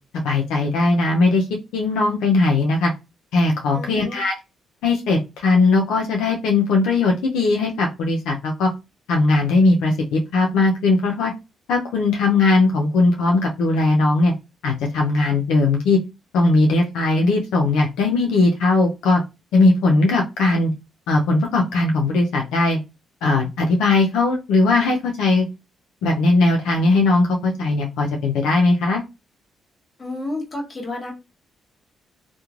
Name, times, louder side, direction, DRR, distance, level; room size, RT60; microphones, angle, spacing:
voice 1, 0.2-1.5 1.7-2.9 3.3-4.4 4.8-8.7 9.1-11.3 11.7-14.3 14.6-16.0 16.3-19.2 19.5-20.7 21.1-22.8 23.2-25.5 26.0-29.0, left 3 dB, 90° left, 1 dB, 0.5 m, -19 dB
voice 2, 3.7-4.2 30.0-31.1, left 2 dB, 35° left, 1 dB, 1.1 m, -30 dB
3.0 x 2.1 x 2.4 m, 0.26 s
cardioid pair, 90°, 0 cm